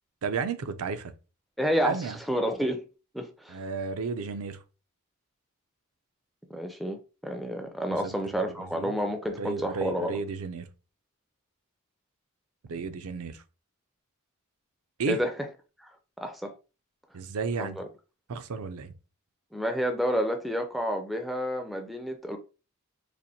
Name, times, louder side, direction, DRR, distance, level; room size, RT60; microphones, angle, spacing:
voice 1, 0.2-1.1 1.8-2.2 3.5-4.6 8.0-8.9 9.3-10.7 12.7-13.4 15.0-15.2 17.1-17.8 18.3-18.9, right 5 dB, 75° right, 0.4 m, -33 dB
voice 2, 1.6-2.8 3.1-3.6 6.5-10.2 15.1-15.3 16.2-16.5 17.6-17.9 19.5-22.4, equal, ahead, 0.3 m, -30 dB
4.2 x 2.5 x 2.7 m
head